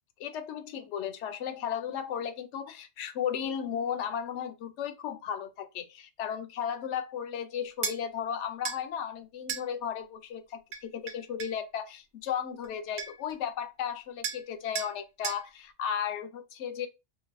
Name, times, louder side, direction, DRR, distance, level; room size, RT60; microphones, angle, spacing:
voice 1, 0.2-16.9, left 8 dB, 85° left, 0.9 m, -35 dB
sound 1, 7.8-8.0 8.6-8.8 9.5-9.7 10.7-11.6 12.6-12.7 13.0-13.3 14.2-14.5 14.7-14.9 15.2-15.4, right 7 dB, 75° right, 0.9 m, -35 dB
3.8 x 2.3 x 2.5 m
omnidirectional pair, 1.2 m